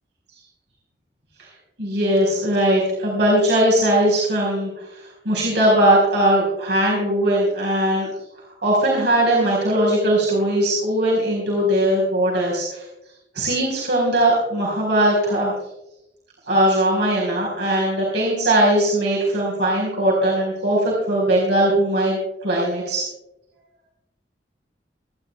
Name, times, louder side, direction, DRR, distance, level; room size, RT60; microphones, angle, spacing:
voice 1, 1.8-8.1 8.6-12.8 13.3-15.5 16.5-23.0, right 1 dB, 75° right, -4 dB, 4.9 m, -20 dB
28.0 x 11.5 x 2.3 m, 0.91 s
head